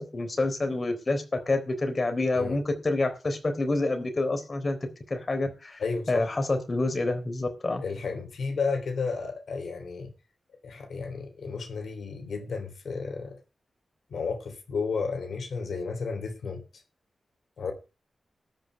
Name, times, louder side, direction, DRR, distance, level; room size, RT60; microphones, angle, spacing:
voice 1, 0.0-5.8 6.1-7.8, left 2 dB, 40° left, 3.8 m, -28 dB
voice 2, 5.8-6.3 7.8-10.1 10.6-13.4 14.1-16.6 17.6-17.7, left 4 dB, 85° left, 3.2 m, -32 dB
13.0 x 5.9 x 8.9 m
cardioid pair, 80°, 0 cm